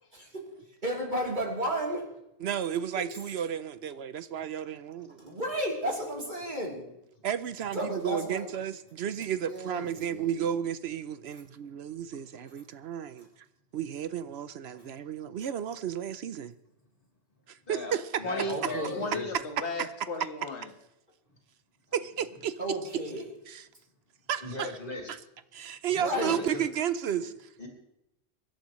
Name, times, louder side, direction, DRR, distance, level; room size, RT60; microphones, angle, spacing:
voice 1, 0.1-0.5 0.8-2.1 5.2-6.9 7.7-8.6 9.4-10.3 14.7-14.8 18.5-19.1 22.6-23.2 25.9-26.4, right 1 dB, 45° right, 3.4 m, -33 dB
voice 2, 2.4-5.2 7.2-13.3 13.7-16.5 17.5-18.3 18.6-18.7 19.3-19.4 21.9-23.0 23.5-23.6 24.3-24.7 25.1-25.2 25.5-27.5, right 9 dB, 75° right, 0.9 m, -33 dB
voice 3, 17.7-19.3 24.4-25.1 26.1-26.6 27.2-27.3 27.6-27.7, left 2 dB, 55° left, 3.3 m, -39 dB
voice 4, 18.2-20.7, left 2 dB, 85° left, 2.0 m, -35 dB
24.0 x 11.5 x 3.1 m
omnidirectional pair, 1.1 m